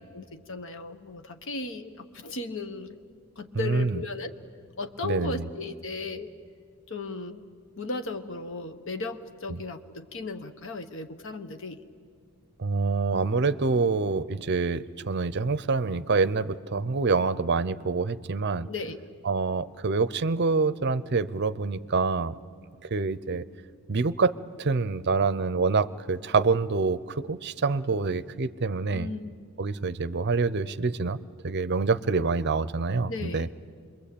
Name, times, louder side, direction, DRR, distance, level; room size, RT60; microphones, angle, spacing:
voice 1, 0.1-3.0 3.4-4.3 4.8-6.3 6.9-7.5 7.8-11.8 18.6-19.0 28.9-29.3 33.1-33.5, left 3 dB, 60° left, 8 dB, 1.2 m, -36 dB
voice 2, 3.5-4.0 5.0-5.5 9.5-9.6 12.6-18.7 19.2-22.4 22.8-23.4 23.9-29.1 29.6-31.2 31.4-33.5, right 4 dB, 50° right, 16 dB, 0.6 m, -26 dB
26.5 x 22.0 x 8.6 m, 2.1 s
head